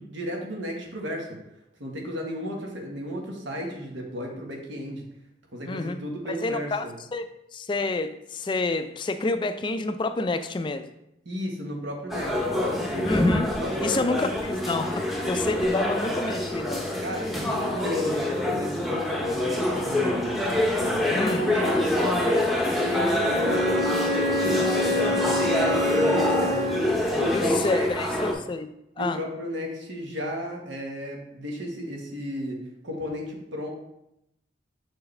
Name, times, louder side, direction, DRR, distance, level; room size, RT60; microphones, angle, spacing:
voice 1, 0.0-1.4 1.8-5.1 5.5-6.9 11.2-13.1 13.6-14.3 17.0-20.4 20.7-22.6 22.8-26.8 27.1-27.9 28.2-28.4 29.0-33.7, equal, 80° right, 0 dB, 1.3 m, -34 dB
voice 2, 5.7-6.0 6.3-7.2 7.5-10.9 13.1-13.5 13.8-16.9 21.2-21.4 27.3-28.7 29.0-29.2, left 3 dB, 25° left, 9 dB, 0.3 m, -28 dB
sound 1, 12.1-28.3, left 1 dB, ahead, 0.7 m, -26 dB
Bowed string instrument, 23.2-27.0, left 1 dB, 20° right, 1.2 m, -27 dB
6.3 x 4.7 x 3.2 m, 0.82 s
head